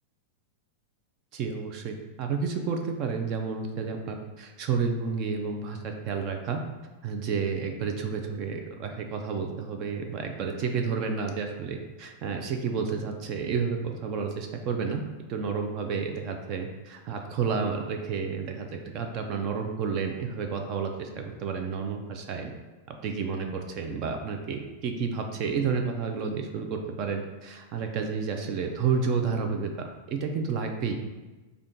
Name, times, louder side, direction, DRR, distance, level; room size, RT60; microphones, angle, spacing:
voice 1, 1.3-6.6 7.0-15.0 15.3-18.7 18.9-22.5 23.0-31.0, right 5 dB, 30° right, 4 dB, 0.3 m, -30 dB
3.6 x 2.2 x 3.8 m, 1.2 s
supercardioid pair, 170°, 0 cm